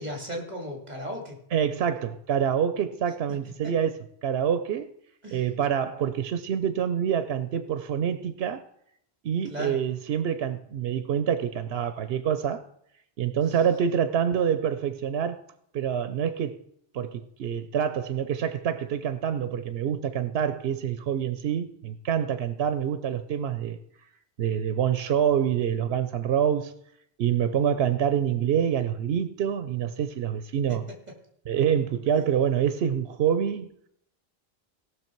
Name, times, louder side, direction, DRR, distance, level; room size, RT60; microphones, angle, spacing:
voice 1, 0.0-1.4 3.3-3.4 3.6-3.7 5.2-5.4 9.4-9.8 13.5-13.6 30.7-31.1, equal, 45° right, 2.6 m, -36 dB
voice 2, 1.5-4.9 5.3-8.7 9.2-12.7 13.2-15.4 15.7-16.6 16.9-23.8 24.4-26.8 27.2-30.9 31.5-33.7, right 8 dB, 80° right, 0.9 m, -26 dB
17.5 x 6.3 x 4.5 m
omnidirectional pair, 1.0 m